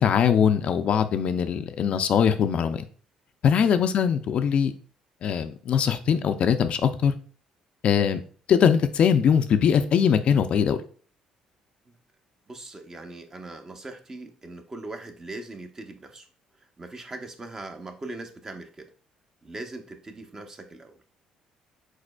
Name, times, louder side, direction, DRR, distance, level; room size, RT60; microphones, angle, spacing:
voice 1, 0.0-2.8 3.4-4.7 5.2-7.1 7.8-8.2 8.5-10.8, left 7 dB, 55° left, 9 dB, 0.4 m, -21 dB
voice 2, 12.5-16.3 16.6-18.9 19.4-21.0, right 2 dB, 25° right, 5 dB, 0.7 m, -40 dB
4.9 x 4.0 x 2.2 m, 0.40 s
cardioid pair, 100°, 2 cm